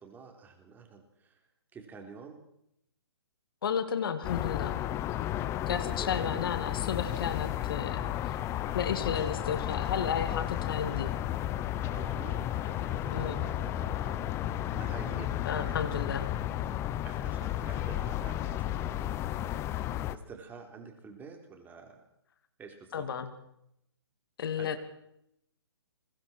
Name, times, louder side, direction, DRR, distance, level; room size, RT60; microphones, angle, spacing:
voice 1, 0.0-1.4 1.7-2.4 5.9-6.4 8.0-8.1 11.8-16.4 17.0-22.1 22.6-23.1 24.5-24.8, right 5 dB, 15° right, 4 dB, 4.0 m, -48 dB
voice 2, 3.6-4.8 5.7-8.0 8.7-11.1 13.1-13.4 15.5-16.3 22.9-23.3 24.4-24.8, left 7 dB, 55° left, 9 dB, 2.7 m, -32 dB
sound 1, 4.2-20.2, left 12 dB, 20° left, 1.0 m, -33 dB
29.5 x 23.5 x 4.6 m, 0.78 s
hypercardioid pair, 140°, 14 cm